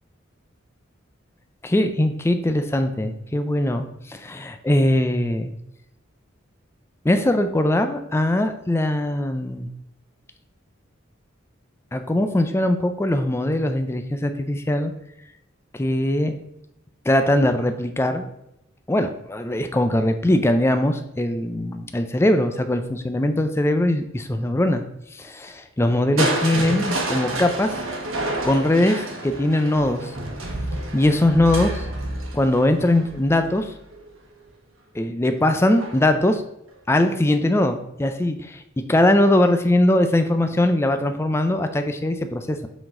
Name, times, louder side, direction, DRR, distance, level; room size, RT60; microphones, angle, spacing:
voice 1, 1.6-5.5 7.0-9.7 11.9-14.9 15.7-16.4 17.1-18.3 18.9-24.8 25.1-27.8 28.4-30.1 30.9-31.9 32.3-33.7 34.9-36.4 36.9-38.6 38.9-42.7, left 1 dB, 15° left, 7 dB, 0.4 m, -21 dB
Crushing, 26.2-34.1 35.7-36.2 36.7-36.8, right 2 dB, 85° right, 1.2 m, -29 dB
7.0 x 4.0 x 3.7 m, 0.82 s
head